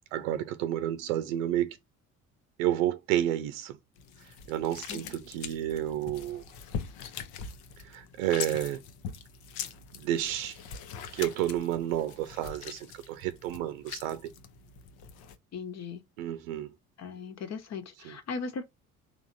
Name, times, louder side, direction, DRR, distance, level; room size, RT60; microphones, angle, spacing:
voice 1, 0.1-1.7 2.6-3.8 4.5-6.4 7.8-8.8 9.9-10.6 11.1-14.2 16.2-16.7 18.1-18.2, right 12 dB, 70° right, 0.7 m, -30 dB
sound 1, 4.0-15.4, left 7 dB, 60° left, 0.8 m, -42 dB
voice 2, 15.5-16.0 17.0-18.6, left 5 dB, 40° left, 1.2 m, -38 dB
4.6 x 3.4 x 2.7 m
figure-of-eight pair, 55°, 41 cm